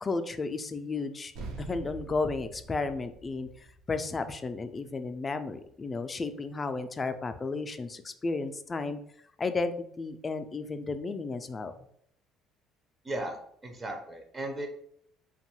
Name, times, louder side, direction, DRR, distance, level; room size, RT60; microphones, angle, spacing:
voice 1, 0.0-1.3 1.6-3.5 3.9-9.0 9.4-11.7, left 3 dB, 30° left, 9 dB, 0.3 m, -33 dB
sound 1, 1.4-6.1, right 3 dB, 80° right, 0.5 m, -46 dB
voice 2, 13.0-14.7, right 1 dB, 30° right, 4 dB, 0.5 m, -36 dB
2.6 x 2.2 x 2.9 m, 0.68 s
supercardioid pair, 75°, 0 cm